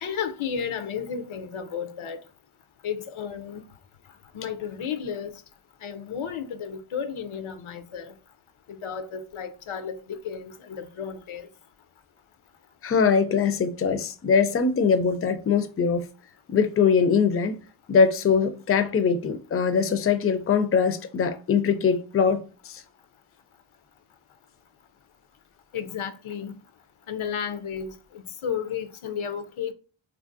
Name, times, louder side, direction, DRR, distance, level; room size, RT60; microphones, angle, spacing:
voice 1, 0.0-2.2 2.8-3.6 4.3-5.4 5.8-8.1 8.7-11.5 25.7-26.5 27.1-29.7, left 7 dB, 85° left, 0.5 m, -33 dB
voice 2, 12.8-16.1 16.5-17.6 17.9-22.8, left 6 dB, 30° left, 0.4 m, -22 dB
3.1 x 2.5 x 2.4 m
wide cardioid pair, 75°, 48 cm